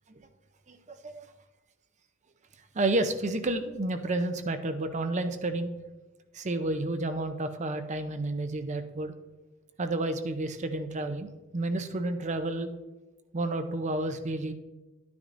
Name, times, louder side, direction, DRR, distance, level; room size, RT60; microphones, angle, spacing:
voice 1, 0.7-1.3 2.7-5.7 6.3-9.1 9.8-12.7 13.3-14.5, right 2 dB, 35° right, 8 dB, 0.6 m, -31 dB
10.5 x 9.4 x 2.6 m, 1.1 s
head